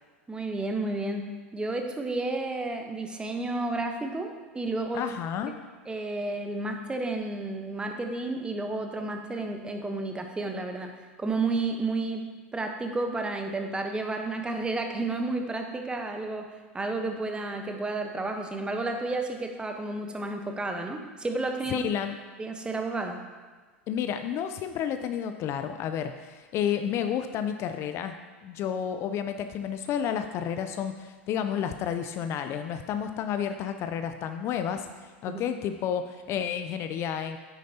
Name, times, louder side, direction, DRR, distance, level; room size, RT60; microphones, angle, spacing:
voice 1, 0.3-5.1 5.9-12.2 12.5-16.5 16.7-21.8 22.4-23.2 35.3-35.4, right 2 dB, 15° right, 4 dB, 1.1 m, -31 dB
voice 2, 4.9-5.5 21.7-22.1 23.9-28.2 28.4-34.9 35.2-37.4, left 8 dB, 40° left, 8 dB, 0.6 m, -31 dB
9.6 x 9.2 x 2.9 m, 1.4 s
figure-of-eight pair, 85°, 7 cm